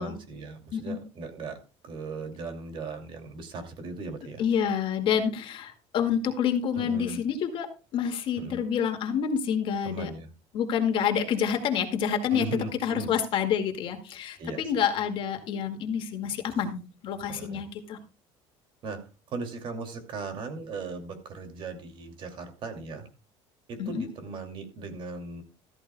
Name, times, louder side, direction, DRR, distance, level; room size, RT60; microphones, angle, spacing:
voice 1, 0.0-1.6 1.8-4.4 6.8-7.2 8.4-8.6 9.8-10.3 12.3-13.1 14.4-14.7 17.3-17.6 18.8-23.1 23.7-25.4, right 3 dB, 45° right, 6 dB, 2.6 m, -38 dB
voice 2, 4.4-10.1 10.5-12.5 12.8-18.0 23.8-24.0, left 8 dB, 50° left, 5 dB, 2.1 m, -28 dB
13.5 x 13.5 x 2.3 m, 0.32 s
cardioid pair, 140°, 11 cm